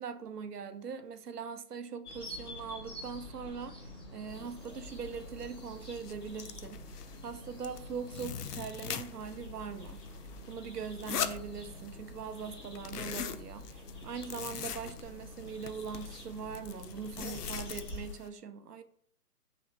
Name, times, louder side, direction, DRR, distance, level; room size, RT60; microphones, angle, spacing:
voice 1, 0.0-6.8 7.2-18.8, right 6 dB, 90° right, 0.6 m, -41 dB
sound 1, 2.1-18.1, left 1 dB, 15° left, 0.5 m, -47 dB
sound 2, 4.6-4.7 5.1-5.4 5.8-7.3 7.6-9.4 9.7-12.1 12.4-18.3, left 8 dB, 80° left, 0.5 m, -41 dB
3.1 x 3.0 x 4.2 m
figure-of-eight pair, 145°, 46 cm